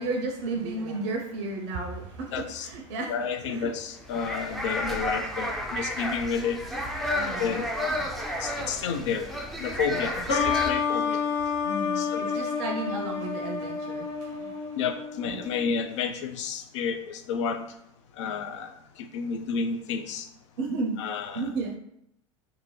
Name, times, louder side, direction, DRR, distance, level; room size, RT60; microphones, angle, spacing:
voice 1, 0.0-3.2 3.4-3.7 7.0-7.6 7.8-8.8 9.9-10.2 11.5-14.8 15.2-15.5 20.6-21.0 21.3-21.8, right 3 dB, 55° right, 2 dB, 0.5 m, -34 dB
voice 2, 2.3-2.7 3.1-6.6 7.4-7.7 8.4-9.3 9.6-11.2 12.0-12.4 14.8-17.7 18.2-18.8 19.1-20.3 21.0-21.4, left 6 dB, 65° left, 7 dB, 0.4 m, -31 dB
sound 1, 4.0-10.7, left 1 dB, ahead, 0.4 m, -32 dB
sound 2, 10.3-15.7, left 6 dB, 30° left, 0.7 m, -29 dB
2.6 x 2.5 x 3.0 m, 0.77 s
figure-of-eight pair, 75°, 17 cm